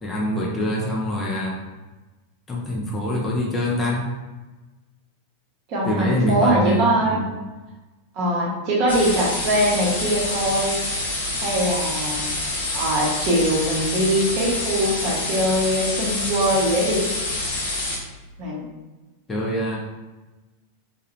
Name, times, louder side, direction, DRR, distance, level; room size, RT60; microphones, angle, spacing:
voice 1, 0.0-1.6 2.5-4.1 5.8-7.3 19.3-19.8, equal, 15° left, -4 dB, 0.5 m, -24 dB
voice 2, 5.7-7.2 8.1-10.8 11.4-12.2 12.7-17.1 18.4-18.7, equal, 40° right, -4 dB, 0.7 m, -22 dB
sound 1, 8.9-18.0, left 2 dB, 60° left, 0.7 m, -27 dB
2.3 x 2.1 x 2.9 m, 1.2 s
figure-of-eight pair, 90°, 0 cm